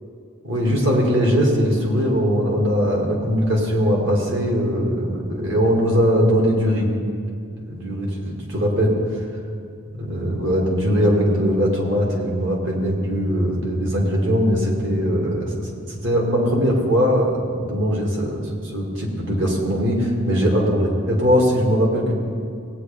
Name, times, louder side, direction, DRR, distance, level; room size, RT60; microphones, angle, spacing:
voice 1, 0.4-6.9 7.7-8.9 9.9-22.1, equal, 60° right, -2 dB, 2.1 m, -20 dB
17.5 x 8.8 x 3.4 m, 2.3 s
head